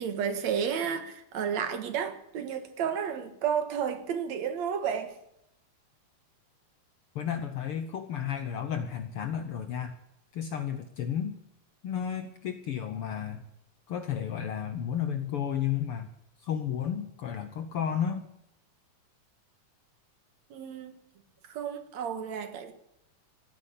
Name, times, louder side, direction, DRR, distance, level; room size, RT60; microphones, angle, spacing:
voice 1, 0.0-5.1 20.5-21.0 21.5-22.7, right 7 dB, 65° right, 2.6 m, -32 dB
voice 2, 7.1-10.0 10.3-11.4 11.8-13.4 13.9-16.1 16.4-18.3, left 8 dB, 65° left, 1.5 m, -32 dB
16.0 x 9.9 x 8.3 m
omnidirectional pair, 3.5 m